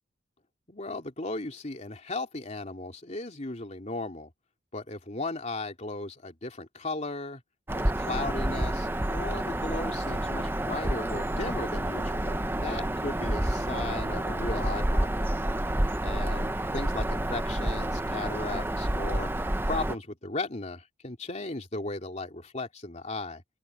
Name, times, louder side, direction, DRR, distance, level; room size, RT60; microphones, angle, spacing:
voice 1, 0.7-4.3 4.7-7.4 7.7-15.3 16.0-19.3 19.7-23.4, left 2 dB, 40° left, 3.1 m, -36 dB
Bird vocalization bird call bird song, 7.7-19.9, right 1 dB, 10° right, 0.7 m, -29 dB
open air
head